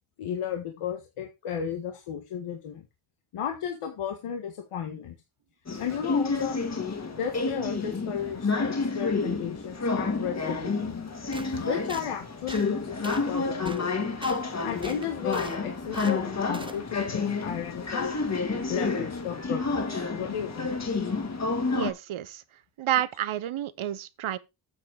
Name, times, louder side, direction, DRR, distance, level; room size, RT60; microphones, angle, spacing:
voice 1, 0.2-2.8 3.3-5.1 5.8-6.6 7.1-11.1 11.5-13.9 14.6-18.2 18.7-19.8 20.1-20.8, left 8 dB, 90° left, 1.7 m, -34 dB
sound 1, 5.7-21.9, left 4 dB, 30° left, 2.0 m, -30 dB
sound 2, 11.3-11.5 11.9-12.1 12.5-12.7 13.0-13.3 13.7-13.8 14.2-14.4 14.8-15.6 15.9-16.2 16.5-16.8, right 2 dB, 10° right, 0.7 m, -41 dB
voice 2, 21.7-22.4 22.8-24.4, right 11 dB, 70° right, 1.0 m, -30 dB
8.9 x 7.5 x 4.8 m
wide cardioid pair, 130°, 50 cm